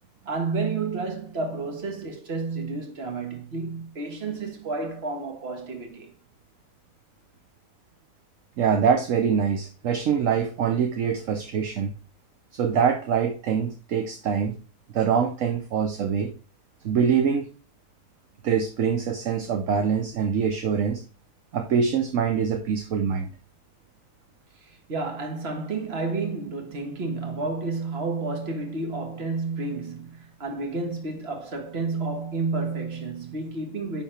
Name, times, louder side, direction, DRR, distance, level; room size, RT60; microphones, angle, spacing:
voice 1, 0.3-6.1 24.6-34.0, right 3 dB, 40° right, 1.7 m, -31 dB
voice 2, 8.6-11.9 12.5-14.5 14.9-16.3 16.8-17.5 18.4-21.0 21.5-23.3, right 7 dB, 60° right, 1.1 m, -24 dB
9.8 x 4.0 x 4.3 m
omnidirectional pair, 1.8 m